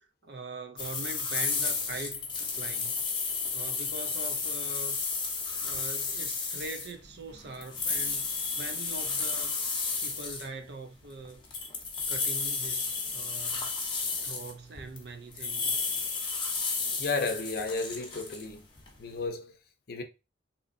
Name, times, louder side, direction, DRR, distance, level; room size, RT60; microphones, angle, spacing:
voice 1, 0.2-3.0 3.5-5.0 5.6-11.4 12.1-13.7 14.2-15.8, right 3 dB, 60° right, 0.6 m, -42 dB
sound 1, 0.8-10.5 11.3-15.0 15.3-19.2, left 4 dB, 25° left, 0.8 m, -32 dB
voice 2, 17.0-18.6 19.0-19.5 19.9-20.0, left 3 dB, 55° left, 0.6 m, -32 dB
3.8 x 2.8 x 2.5 m
head